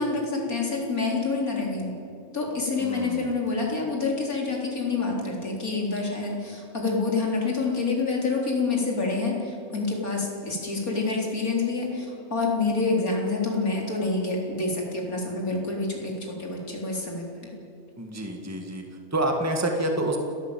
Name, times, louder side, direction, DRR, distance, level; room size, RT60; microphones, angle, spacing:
voice 1, 0.0-1.9 2.3-17.5, left 3 dB, 85° left, -1 dB, 4.4 m, -27 dB
voice 2, 2.8-3.4 18.0-18.8 19.1-20.2, right 1 dB, 10° right, 3 dB, 1.8 m, -28 dB
29.5 x 12.0 x 9.1 m, 2.6 s
omnidirectional pair, 1.5 m